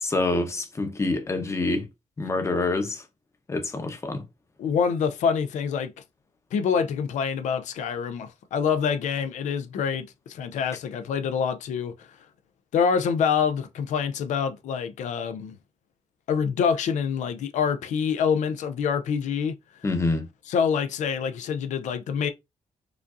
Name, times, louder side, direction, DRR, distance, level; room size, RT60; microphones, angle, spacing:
voice 1, 0.0-1.9 2.2-3.0 3.5-4.3 19.8-20.3, left 2 dB, 25° left, 0.8 m, -26 dB
voice 2, 4.6-5.9 6.5-12.1 12.7-15.5 16.3-19.6 20.5-22.3, left 6 dB, 85° left, 0.5 m, -26 dB
4.9 x 2.6 x 2.4 m
cardioid pair, 120°, 12 cm